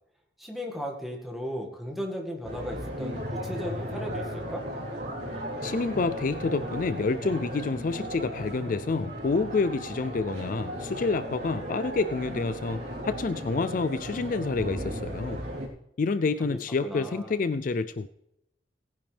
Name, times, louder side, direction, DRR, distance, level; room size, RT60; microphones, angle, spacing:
voice 1, 0.4-4.6 16.4-17.3, equal, ahead, 0 dB, 1.9 m, -36 dB
sound 1, 2.4-15.7, equal, 60° right, 3.7 m, -36 dB
voice 2, 5.6-15.4 16.0-18.1, left 4 dB, 45° left, 14 dB, 0.4 m, -28 dB
18.0 x 10.5 x 3.4 m, 0.81 s
head